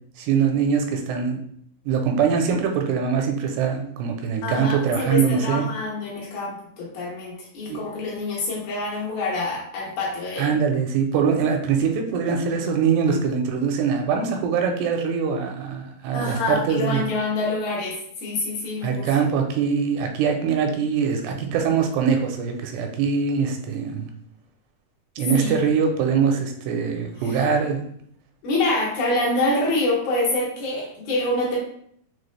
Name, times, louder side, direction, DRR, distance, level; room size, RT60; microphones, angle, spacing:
voice 1, 0.2-1.4 1.9-5.7 7.7-7.8 10.4-17.1 18.8-24.1 25.2-27.8, right 6 dB, 85° right, 4 dB, 2.7 m, -23 dB
voice 2, 4.4-10.5 16.1-19.1 25.3-25.5 28.4-31.6, left 2 dB, 70° left, -4 dB, 2.8 m, -26 dB
6.5 x 2.3 x 3.2 m, 0.66 s
omnidirectional pair, 4.8 m